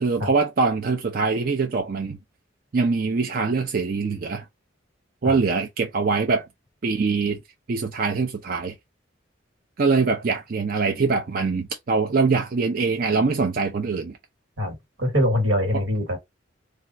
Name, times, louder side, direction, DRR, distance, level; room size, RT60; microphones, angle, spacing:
voice 1, 0.0-2.2 2.7-4.4 5.2-6.5 6.8-7.4 7.7-8.7 9.8-14.2, right 4 dB, 45° right, 0.4 m, -23 dB
voice 2, 14.6-16.2, equal, 80° right, 1.4 m, -23 dB
3.4 x 2.3 x 2.6 m
head